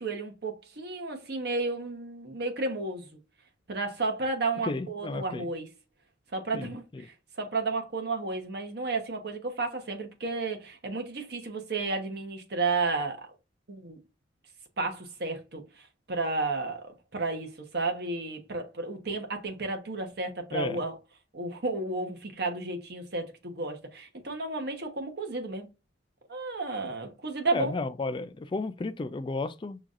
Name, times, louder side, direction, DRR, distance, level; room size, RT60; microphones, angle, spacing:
voice 1, 0.0-3.1 3.7-5.7 6.3-13.3 13.7-14.0 14.8-15.6 16.1-21.0 21.3-25.7 26.3-27.8, right 3 dB, 65° right, 1.0 m, -32 dB
voice 2, 4.6-5.5 6.5-7.0 20.5-20.8 27.5-29.8, left 3 dB, 25° left, 0.3 m, -33 dB
5.9 x 2.4 x 2.5 m
head